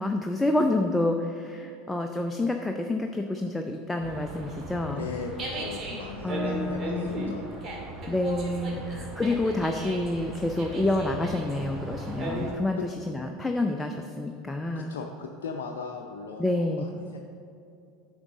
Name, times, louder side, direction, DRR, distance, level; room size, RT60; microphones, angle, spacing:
voice 1, 0.0-5.1 6.2-7.3 8.1-12.8 13.1-14.9 16.4-16.8, left 2 dB, 10° left, 4 dB, 0.5 m, -28 dB
Dog, 4.0-12.5, right 1 dB, 35° right, 1.9 m, -36 dB
voice 2, 4.9-7.4 8.7-9.0 12.4-12.9 14.7-17.2, left 5 dB, 70° left, 2 dB, 0.5 m, -38 dB
9.6 x 6.3 x 3.8 m, 2.6 s
figure-of-eight pair, 75°, 0 cm